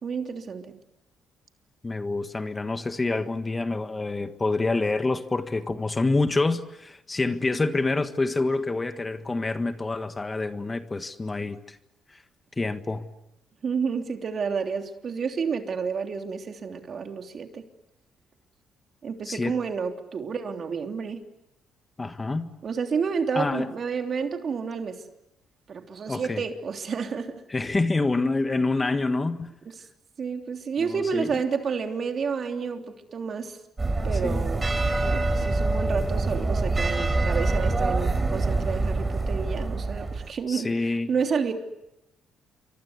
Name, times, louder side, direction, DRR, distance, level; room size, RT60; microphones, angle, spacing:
voice 1, 0.0-0.8 13.6-17.6 19.0-21.2 22.6-25.0 25.7-27.3 30.2-33.6 34.0-34.6 35.0-41.5, right 5 dB, 50° right, 3.3 m, -30 dB
voice 2, 1.8-11.8 12.1-12.2 12.6-13.1 19.2-19.6 22.0-22.5 23.3-23.7 26.1-26.5 27.5-29.5 30.8-31.4 34.2-34.5 40.5-41.1, left 3 dB, 25° left, 1.6 m, -27 dB
sound 1, 33.8-40.3, right 2 dB, 25° right, 4.4 m, -25 dB
28.5 x 24.5 x 8.3 m
cardioid pair, 90°, 0 cm